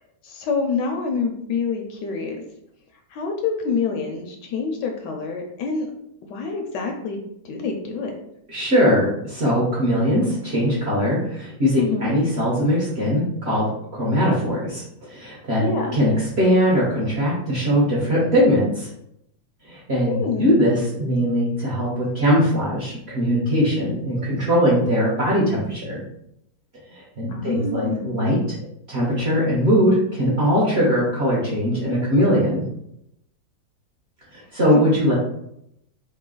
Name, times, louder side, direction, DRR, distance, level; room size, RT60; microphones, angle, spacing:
voice 1, 0.2-2.4 3.1-5.9 6.3-8.2 11.8-12.1 15.6-16.0 20.1-20.5 27.3-28.2 34.7-34.8, left 5 dB, 75° left, 3 dB, 1.1 m, -27 dB
voice 2, 8.5-14.8 15.1-15.7 15.9-18.9 19.7-26.0 27.2-28.4 28.9-32.6 34.5-35.1, equal, 45° right, -6 dB, 0.8 m, -20 dB
3.2 x 2.7 x 3.8 m, 0.76 s
omnidirectional pair, 2.1 m